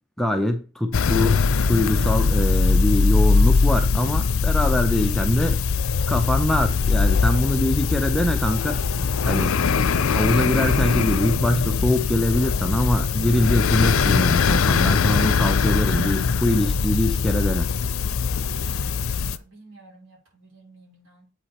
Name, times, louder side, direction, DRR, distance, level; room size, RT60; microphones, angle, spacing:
voice 1, 0.2-1.4 1.7-5.6 6.1-8.8 9.3-9.6 10.1-17.7, left 1 dB, ahead, 0.6 m, -23 dB
sound 1, 0.9-19.4, left 5 dB, 85° left, 0.5 m, -21 dB
voice 2, 18.9-21.3, right 2 dB, 70° right, 4.9 m, -51 dB
8.1 x 4.9 x 4.3 m
head